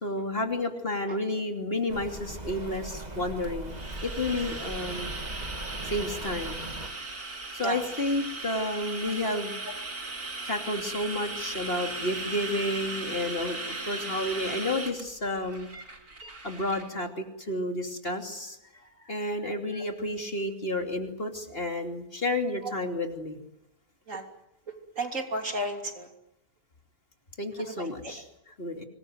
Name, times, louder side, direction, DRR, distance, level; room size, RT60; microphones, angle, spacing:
voice 1, 0.0-5.1 5.9-6.7 7.5-9.5 10.4-15.7 16.4-18.6 19.1-23.4 27.4-28.8, left 1 dB, 40° left, 4 dB, 3.1 m, -31 dB
Rain, 1.9-6.9, right 1 dB, 30° right, 2.2 m, -39 dB
sound 1, 3.4-16.9, right 3 dB, 85° right, 3.9 m, -37 dB
voice 2, 25.0-26.1 27.7-28.1, right 1 dB, 60° right, 4 dB, 3.5 m, -33 dB
25.5 x 20.5 x 9.3 m, 0.86 s
omnidirectional pair, 1.6 m